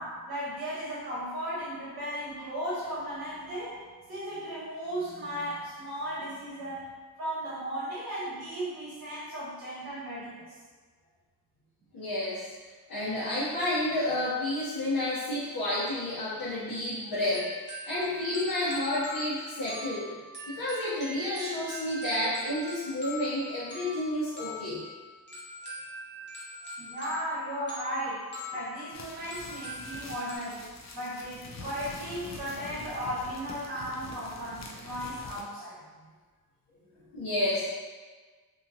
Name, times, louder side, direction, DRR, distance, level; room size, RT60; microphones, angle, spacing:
voice 1, 0.0-6.9 7.2-10.5 26.8-30.7 30.9-35.8, equal, 80° right, -8 dB, 1.3 m, -36 dB
voice 2, 11.9-12.5 12.9-20.1 20.5-24.8 37.1-37.8, left 1 dB, 65° left, -10 dB, 0.8 m, -30 dB
sound 1, 17.3-30.4, equal, 30° left, 0.8 m, -42 dB
sound 2, 28.9-35.4, left 3 dB, 50° left, 0.4 m, -45 dB
2.9 x 2.4 x 2.6 m, 1.4 s
wide cardioid pair, 105°, 37 cm